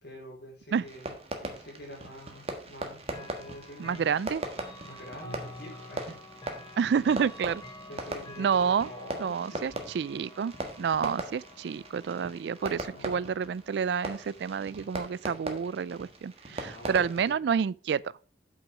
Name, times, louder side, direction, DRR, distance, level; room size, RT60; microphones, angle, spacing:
voice 1, 0.0-1.1 1.4-4.1 4.8-6.1 7.9-9.9 12.9-13.2 16.5-17.2, left 1 dB, 70° left, 4.5 m, -46 dB
Fireworks, 0.8-17.3, right 1 dB, 35° right, 1.5 m, -40 dB
Chime / Clock, 3.1-13.9, left 1 dB, 25° left, 0.9 m, -49 dB
voice 2, 3.8-4.4 6.8-7.6 8.4-8.9 9.2-18.0, right 6 dB, 70° right, 0.3 m, -29 dB
8.4 x 6.0 x 4.9 m
head